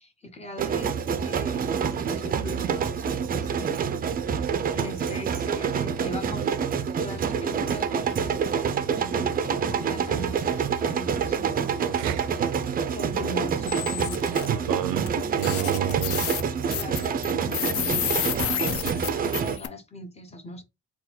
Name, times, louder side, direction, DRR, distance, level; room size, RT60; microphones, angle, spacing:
voice 1, 0.0-3.7 4.4-6.6 7.0-12.1 12.9-15.1 16.7-20.6, equal, 20° left, 0.8 m, -40 dB
sound 1, 0.6-19.6, right 7 dB, 30° right, 0.4 m, -27 dB
voice 2, 12.0-12.5 14.5-15.1 15.4-16.2 16.5-16.8, right 12 dB, 90° right, 0.5 m, -30 dB
sound 2, 13.7-14.5 15.1-15.2 15.4-19.7, left 10 dB, 50° left, 0.5 m, -30 dB
3.7 x 2.3 x 4.2 m
cardioid pair, 145°, 31 cm